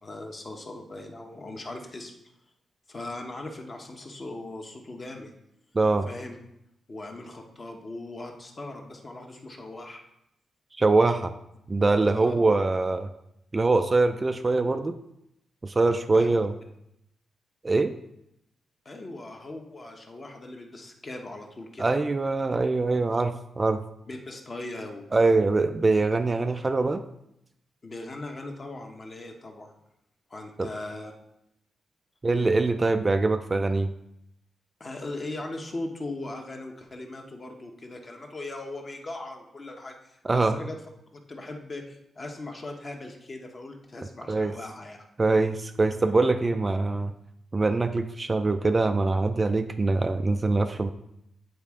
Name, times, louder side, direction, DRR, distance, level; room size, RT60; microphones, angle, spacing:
voice 1, 0.0-2.1 2.9-5.3 6.1-6.4 6.9-10.0 12.1-12.3 16.1-16.3 18.8-21.9 24.1-25.0 27.8-29.7 30.3-31.1 34.8-40.8 41.1-45.0 45.9-46.1, left 2 dB, 30° left, 3 dB, 0.9 m, -39 dB
voice 2, 5.7-6.1 10.8-11.3 11.7-13.1 13.5-15.0 15.6-16.5 17.6-17.9 21.8-23.8 25.1-27.0 30.6-30.7 32.2-33.9 40.2-40.6 44.3-44.6 45.2-47.1 47.5-50.9, right 3 dB, 25° right, 8 dB, 0.3 m, -23 dB
9.2 x 4.2 x 3.6 m, 0.81 s
cardioid pair, 125°, 0 cm